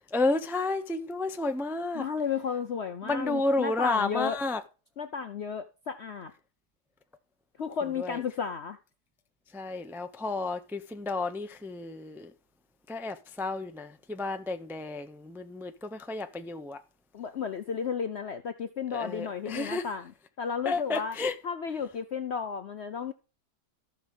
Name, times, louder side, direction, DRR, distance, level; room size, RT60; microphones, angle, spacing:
voice 1, 0.1-2.0 3.0-4.6 8.0-8.2 9.5-12.3 12.9-16.8 18.9-19.8 20.6-21.3, left 3 dB, ahead, 0.4 m, -31 dB
voice 2, 1.9-4.4 5.0-6.3 7.6-8.8 17.1-20.1 20.4-21.2 21.4-23.1, left 6 dB, 60° left, 0.7 m, -33 dB
13.5 x 6.2 x 5.4 m
omnidirectional pair, 1.8 m